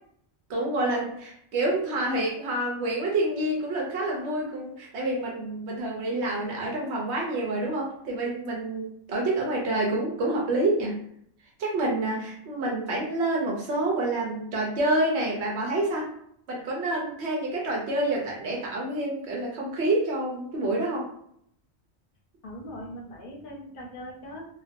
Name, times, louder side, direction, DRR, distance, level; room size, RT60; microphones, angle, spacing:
voice 1, 0.5-11.0 11.6-16.1 16.5-21.1, right 2 dB, 80° right, -2 dB, 0.9 m, -28 dB
voice 2, 22.4-24.5, equal, 55° left, -1 dB, 0.7 m, -40 dB
2.4 x 2.1 x 2.5 m, 0.69 s
omnidirectional pair, 1.1 m